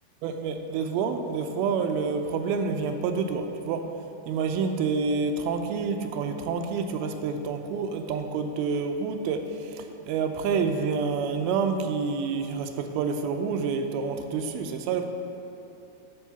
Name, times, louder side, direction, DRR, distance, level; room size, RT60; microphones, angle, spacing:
voice 1, 0.2-3.9 4.3-15.0, right 5 dB, 85° right, 6 dB, 2.4 m, -28 dB
10.5 x 5.5 x 5.7 m, 2.8 s
omnidirectional pair, 4.4 m